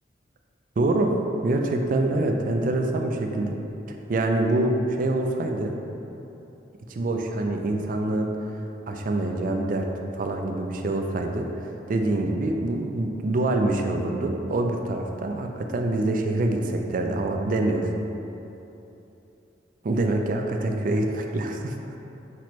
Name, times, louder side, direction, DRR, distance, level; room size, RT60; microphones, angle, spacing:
voice 1, 0.8-1.1 1.4-3.6 3.9-5.7 6.9-8.3 8.9-9.8 10.1-17.9 19.8-21.7, right 2 dB, 45° right, 3 dB, 0.4 m, -25 dB
6.0 x 3.0 x 2.9 m, 3.0 s
head